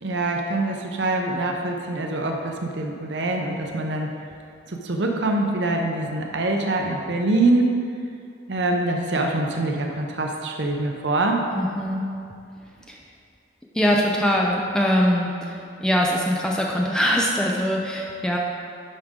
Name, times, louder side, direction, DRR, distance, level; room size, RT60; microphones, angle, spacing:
voice 1, 0.0-4.1 4.7-7.7 8.5-11.4, right 2 dB, 70° right, 2 dB, 0.8 m, -24 dB
voice 2, 11.5-12.0 12.9-13.0 13.7-18.4, equal, 5° left, -2 dB, 0.6 m, -22 dB
12.0 x 5.1 x 3.7 m, 2.4 s
head